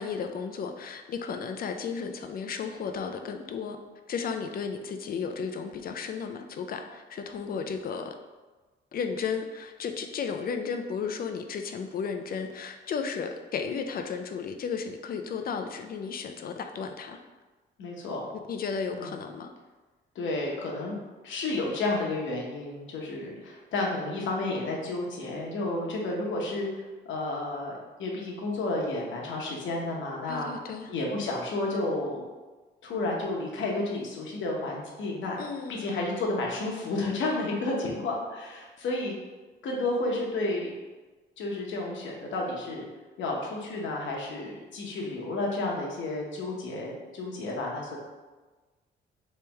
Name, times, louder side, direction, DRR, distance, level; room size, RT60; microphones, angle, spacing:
voice 1, 0.0-3.8 4.1-8.1 8.9-17.2 18.5-19.5 30.3-30.9 35.4-35.9, left 6 dB, 50° left, 6 dB, 0.4 m, -34 dB
voice 2, 17.8-18.3 18.9-19.1 20.1-21.0 21.2-26.8 27.1-30.5 30.9-32.2 32.8-35.4 35.7-39.1 39.6-40.7 41.4-42.9 43.2-48.0, left 2 dB, 75° left, -2 dB, 1.0 m, -31 dB
3.2 x 3.0 x 3.4 m, 1.3 s
cardioid pair, 90°, 20 cm